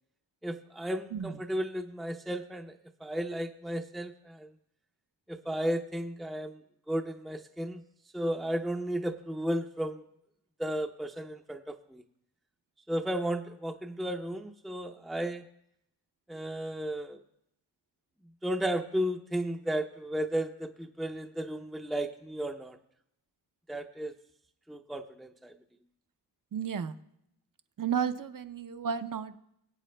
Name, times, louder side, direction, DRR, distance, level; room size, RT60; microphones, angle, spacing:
voice 1, 0.4-2.7 3.0-4.5 5.3-6.6 6.9-7.8 8.1-10.0 10.6-12.0 12.9-15.4 16.3-17.2 18.4-22.8 23.7-24.1 24.7-25.5, right 1 dB, ahead, 4 dB, 0.6 m, -34 dB
voice 2, 26.5-26.9 27.8-29.4, right 7 dB, 50° right, 10 dB, 0.7 m, -32 dB
23.0 x 8.3 x 2.2 m, 0.76 s
cardioid pair, 55°, 44 cm